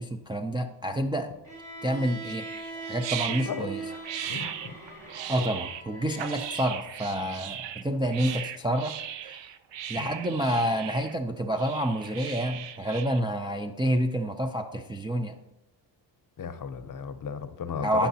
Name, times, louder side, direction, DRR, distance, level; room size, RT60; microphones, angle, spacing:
voice 1, 0.0-1.3 1.8-2.5 2.8-3.8 5.3-9.0 9.2-9.4 9.9-15.4 17.8-18.1, right 1 dB, 10° right, 3 dB, 0.3 m, -28 dB
Bowed string instrument, 1.4-6.7, right 3 dB, 55° right, 2.9 m, -41 dB
sound 1, 2.2-13.2, right 10 dB, 70° right, 0.5 m, -38 dB
voice 2, 4.3-4.7 8.2-8.3 10.0-10.1 16.4-18.1, left 7 dB, 45° left, 10 dB, 0.7 m, -35 dB
10.0 x 5.8 x 2.7 m, 0.91 s
cardioid pair, 75°, 46 cm